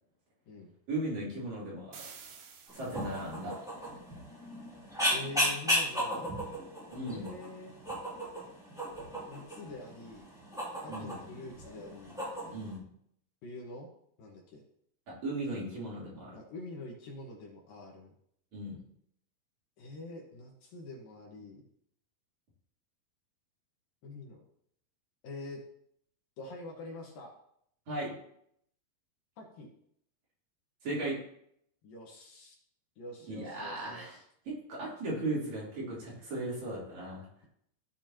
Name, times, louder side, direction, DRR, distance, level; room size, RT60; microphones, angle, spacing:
voice 1, 0.9-2.0 2.7-3.5 6.9-7.3 10.9-11.2 12.5-12.8 15.2-16.3 18.5-18.8 27.9-28.1 30.8-31.2 33.3-34.2 34.5-37.2, right 1 dB, 45° right, -7 dB, 4.8 m, -36 dB
sound 1, 1.9-3.5, right 6 dB, 85° right, 3.5 m, -51 dB
sound 2, 2.7-12.8, equal, ahead, 2.9 m, -35 dB
voice 2, 5.1-6.3 7.0-7.7 9.3-10.3 10.8-12.2 13.4-13.9 14.2-14.6 16.3-18.1 19.8-21.6 24.0-24.4 25.2-25.6 26.4-27.3 29.4-29.7 31.8-32.6 33.0-34.2 36.3-36.4, left 2 dB, 65° left, 0 dB, 2.9 m, -45 dB
16.0 x 7.1 x 2.9 m, 0.70 s
omnidirectional pair, 4.6 m